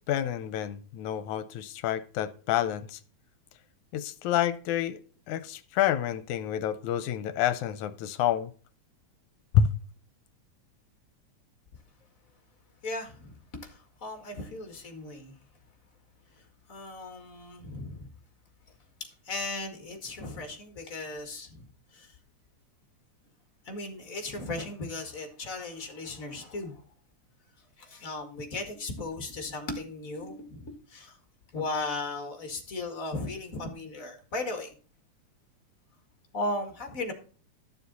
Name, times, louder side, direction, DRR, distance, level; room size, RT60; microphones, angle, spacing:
voice 1, 0.1-3.0 3.9-5.0 5.3-8.5 9.5-9.7, left 10 dB, 80° left, 13 dB, 2.1 m, -28 dB
voice 2, 12.8-15.3 16.7-18.1 19.3-21.7 21.9-22.1 23.7-26.8 27.8-31.2 31.5-34.7 36.3-37.1, left 2 dB, 30° left, 5 dB, 2.0 m, -36 dB
13.0 x 7.0 x 4.1 m, 0.39 s
omnidirectional pair, 3.5 m